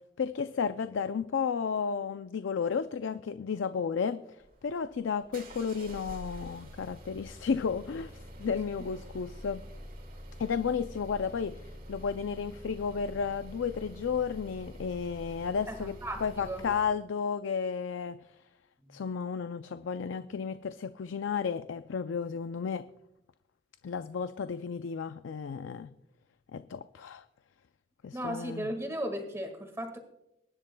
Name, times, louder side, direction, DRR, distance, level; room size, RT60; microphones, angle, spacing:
voice 1, 0.2-4.2 4.6-9.6 10.4-15.9 16.2-18.2 18.9-22.9 23.8-25.9 26.5-27.2 28.0-28.7, left 6 dB, 80° left, 11 dB, 0.4 m, -33 dB
sound 1, 4.4-16.9, equal, 50° right, 2.0 m, -47 dB
voice 2, 15.7-16.6 18.8-19.1 28.1-30.0, right 1 dB, 15° right, 4 dB, 1.8 m, -36 dB
23.0 x 11.0 x 2.2 m, 0.87 s
head